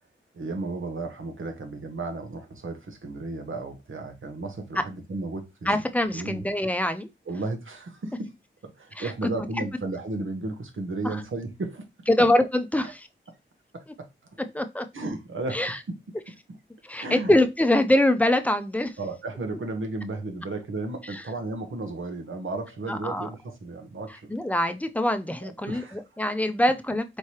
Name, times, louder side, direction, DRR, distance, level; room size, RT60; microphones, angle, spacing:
voice 1, 0.3-5.7 6.1-6.4 7.3-8.3 8.6-12.3 13.3-13.4 13.7-14.4 14.9-16.6 17.0-17.4 19.0-24.3 25.4-26.0, right 2 dB, 80° right, 1.0 m, -34 dB
voice 2, 5.7-7.1 9.0-9.3 11.0-11.2 12.1-13.1 14.5-14.9 15.5-15.8 16.8-19.0 21.1-21.2 22.9-23.3 24.3-27.2, left 1 dB, 5° left, 0.5 m, -24 dB
4.5 x 3.2 x 2.8 m
wide cardioid pair, 85°, 20 cm